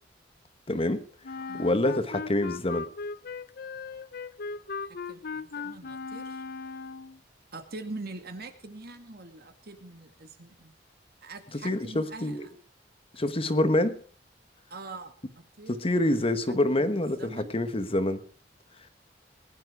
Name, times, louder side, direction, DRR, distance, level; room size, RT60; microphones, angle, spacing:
voice 1, 0.7-1.0 1.5-2.9 11.6-12.4 13.1-14.0 15.7-18.2, left 1 dB, 30° left, 11 dB, 1.3 m, -26 dB
Wind instrument woodwind instrument, 1.2-7.2, left 4 dB, 55° left, 0.7 m, -38 dB
voice 2, 4.9-6.4 7.5-10.7 11.2-12.5 14.7-16.1 16.5-17.5, right 2 dB, 60° right, 7 dB, 2.2 m, -44 dB
20.0 x 10.5 x 4.8 m, 0.43 s
head